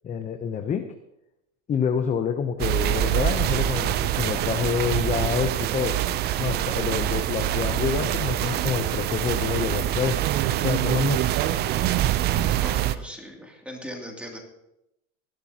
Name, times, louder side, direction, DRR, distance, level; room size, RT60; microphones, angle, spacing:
voice 1, 0.0-0.9 1.7-6.0 6.4-10.2 10.6-11.3, left 7 dB, 20° left, 6 dB, 0.7 m, -27 dB
sound 1, 2.6-13.0, right 12 dB, 30° right, 0.4 m, -25 dB
voice 2, 12.6-14.4, equal, 5° right, 0 dB, 2.6 m, -39 dB
18.5 x 11.5 x 2.9 m, 0.84 s
supercardioid pair, 130°, 37 cm